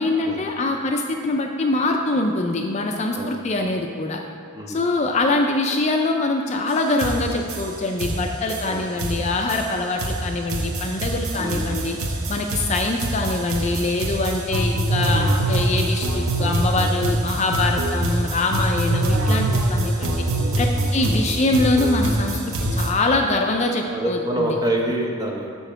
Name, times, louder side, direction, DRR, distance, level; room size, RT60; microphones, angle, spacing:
voice 1, 0.0-4.2 4.7-12.0 12.3-20.2 20.6-24.6, left 2 dB, 30° left, 2 dB, 0.4 m, -23 dB
voice 2, 4.5-5.0 8.7-8.9 11.4-11.8 20.9-21.5 23.9-25.5, right 1 dB, 20° right, 0 dB, 0.8 m, -27 dB
sound 1, 6.7-6.8 7.0-22.9, right 1 dB, 80° right, 0.9 m, -24 dB
7.0 x 4.3 x 5.7 m, 2.4 s
head